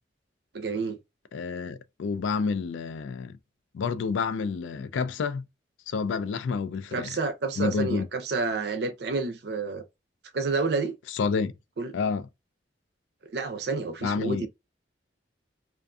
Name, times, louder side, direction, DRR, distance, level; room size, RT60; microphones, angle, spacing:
voice 1, 0.5-1.0 6.9-9.8 10.3-11.0 11.8-11.9 13.2-14.5, right 4 dB, 60° right, 0.5 m, -29 dB
voice 2, 1.3-3.4 3.7-5.4 5.9-7.2 7.6-8.1 11.1-11.5 11.9-12.3 14.0-14.5, left 5 dB, 80° left, 0.3 m, -29 dB
2.5 x 2.4 x 2.3 m
head